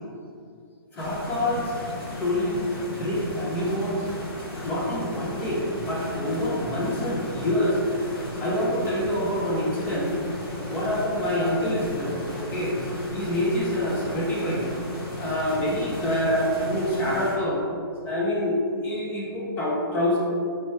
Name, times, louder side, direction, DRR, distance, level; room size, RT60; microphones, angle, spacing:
voice 1, 0.9-1.7 2.1-2.6 2.9-4.1 4.6-7.8 8.4-10.2 10.7-12.8 13.1-14.6 15.2-17.6 18.0-18.6 18.8-20.2, left 1 dB, 15° left, -5 dB, 0.6 m, -26 dB
sound 1, 1.0-17.4, left 1 dB, 85° left, 1.4 m, -35 dB
4.5 x 2.9 x 3.1 m, 2.4 s
hypercardioid pair, 160°, 12 cm